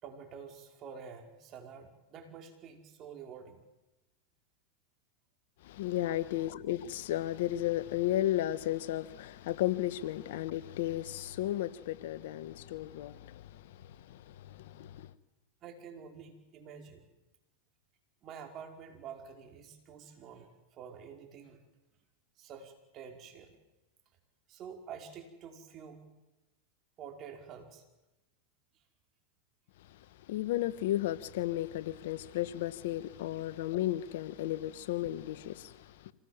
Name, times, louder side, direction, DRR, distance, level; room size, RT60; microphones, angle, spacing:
voice 1, 0.0-3.6 6.0-6.2 15.6-17.0 18.2-21.6 22.4-23.6 24.5-26.1 27.0-27.8, right 7 dB, 40° right, 5.1 m, -48 dB
voice 2, 5.6-15.1 29.9-30.0 30.3-36.1, left 13 dB, 70° left, 1.3 m, -34 dB
26.5 x 18.5 x 7.4 m
hypercardioid pair, 115°, 0 cm